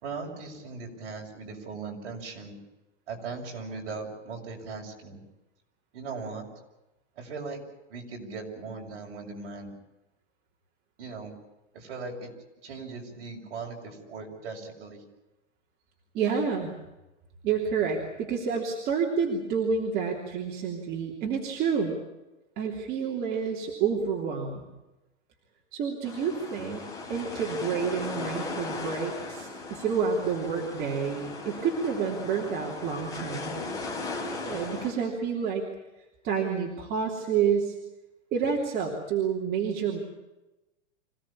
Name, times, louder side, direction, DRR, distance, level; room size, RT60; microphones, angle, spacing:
voice 1, 0.0-2.6 3.1-5.2 5.9-6.5 7.2-7.6 7.9-9.7 11.0-11.3 11.7-12.3 12.6-15.0, right 4 dB, 50° right, 1 dB, 6.6 m, -39 dB
voice 2, 16.1-16.7 17.4-21.9 22.6-24.6 25.7-33.6 34.4-35.7 36.2-37.7 38.3-40.0, right 6 dB, 25° right, -1 dB, 3.2 m, -29 dB
sound 1, 26.0-34.9, left 3 dB, 10° left, 4.4 m, -37 dB
26.0 x 17.5 x 8.6 m, 1.0 s
hypercardioid pair, 160°, 36 cm